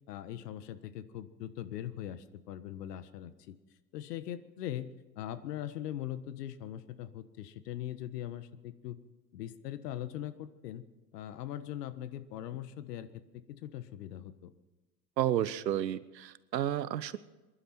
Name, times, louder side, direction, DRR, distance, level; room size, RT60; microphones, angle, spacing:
voice 1, 0.1-3.5 3.9-9.0 9.3-10.8 11.1-13.2 13.6-14.5, left 11 dB, 70° left, 12 dB, 1.5 m, -41 dB
voice 2, 15.2-17.2, right 11 dB, 85° right, 16 dB, 1.0 m, -31 dB
27.0 x 11.5 x 4.5 m, 1.1 s
hypercardioid pair, 95°, 49 cm